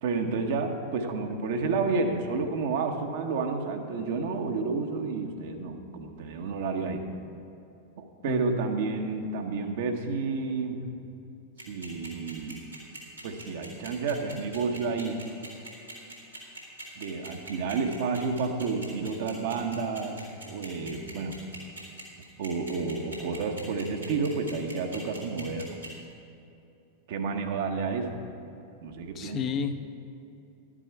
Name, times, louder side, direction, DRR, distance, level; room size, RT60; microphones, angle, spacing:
voice 1, 0.0-7.0 8.0-10.8 11.7-12.6 13.2-15.2 17.0-21.4 22.4-25.8 27.1-28.2 28.8-29.4, right 4 dB, 55° right, 4 dB, 1.0 m, -30 dB
voice 2, 8.3-8.6 29.1-29.7, left 7 dB, 30° left, 7 dB, 0.7 m, -31 dB
sound 1, 11.6-26.1, right 2 dB, 90° right, 2.4 m, -42 dB
12.0 x 9.9 x 4.6 m, 2.7 s
figure-of-eight pair, 90°, 0 cm